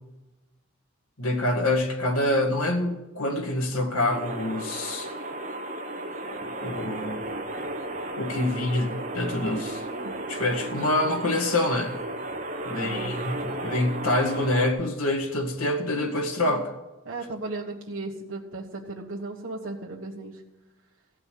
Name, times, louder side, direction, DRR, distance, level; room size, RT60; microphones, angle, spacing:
voice 1, 1.2-5.1 6.4-7.3 8.2-9.8 10.3-11.9 12.6-16.7, left 1 dB, 85° left, 3 dB, 1.9 m, -26 dB
sound 1, 4.1-14.7, right 1 dB, 35° right, 1.0 m, -34 dB
voice 2, 12.8-13.1 16.5-16.6 17.0-20.4, right 2 dB, 65° right, -4 dB, 1.5 m, -36 dB
15.5 x 5.6 x 8.5 m, 1.1 s
head